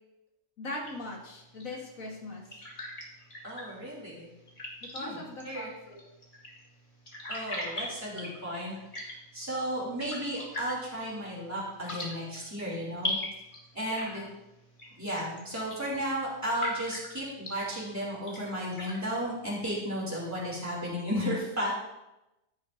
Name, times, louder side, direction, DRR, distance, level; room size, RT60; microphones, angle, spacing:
voice 1, 0.6-2.4 4.8-6.0 13.9-14.3, left 1 dB, 80° left, -1 dB, 2.0 m, -40 dB
sound 1, 0.8-20.7, left 1 dB, 35° left, 2.2 m, -42 dB
voice 2, 3.4-4.3 5.0-5.7 7.3-9.1 9.3-13.2 13.7-14.2 15.0-21.7, equal, 10° right, -5 dB, 3.2 m, -34 dB
13.0 x 10.0 x 2.8 m, 0.94 s
omnidirectional pair, 1.4 m